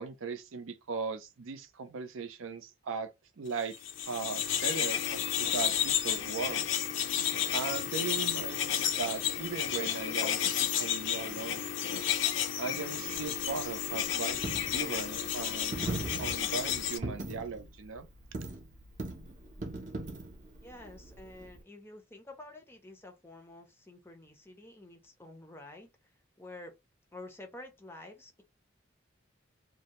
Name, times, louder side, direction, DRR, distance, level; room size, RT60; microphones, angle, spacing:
voice 1, 0.0-3.1 3.4-3.8 4.1-6.6 7.5-11.6 12.6-14.4 14.7-15.8 16.2-18.1, right 5 dB, 85° right, 0.5 m, -38 dB
sound 1, 3.7-17.0, left 9 dB, 70° left, 0.4 m, -32 dB
Coin (dropping), 13.1-21.6, right 2 dB, 35° right, 0.6 m, -41 dB
voice 2, 20.6-26.1 26.4-26.7 27.1-28.4, left 2 dB, 10° left, 0.5 m, -49 dB
2.6 x 2.1 x 2.9 m
head